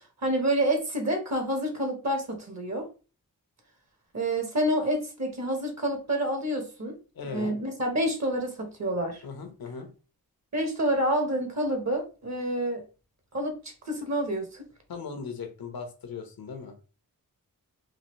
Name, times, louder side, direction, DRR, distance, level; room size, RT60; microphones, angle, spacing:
voice 1, 0.2-2.9 4.1-6.9 7.2-9.2 10.5-12.8 13.3-13.5 13.9-14.6, right 1 dB, 50° right, 4 dB, 1.2 m, -28 dB
voice 2, 7.1-7.6 9.2-9.9 14.9-16.7, left 5 dB, 80° left, 5 dB, 0.9 m, -38 dB
3.9 x 2.5 x 3.1 m, 0.34 s
wide cardioid pair, 80°, 35 cm